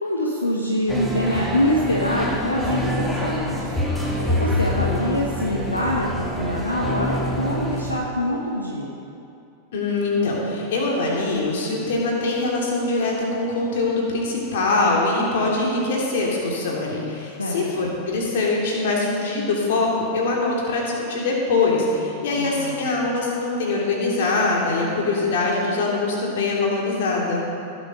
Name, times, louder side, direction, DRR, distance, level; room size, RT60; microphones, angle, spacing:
voice 1, 0.0-8.9 17.4-17.7 22.4-22.7, left 1 dB, 80° left, -1 dB, 1.2 m, -25 dB
sound 1, 0.9-8.0, equal, 5° left, 2.1 m, -26 dB
voice 2, 9.7-27.4, left 3 dB, 55° left, -2 dB, 3.1 m, -23 dB
16.5 x 8.3 x 5.4 m, 2.6 s
figure-of-eight pair, 90°, 0 cm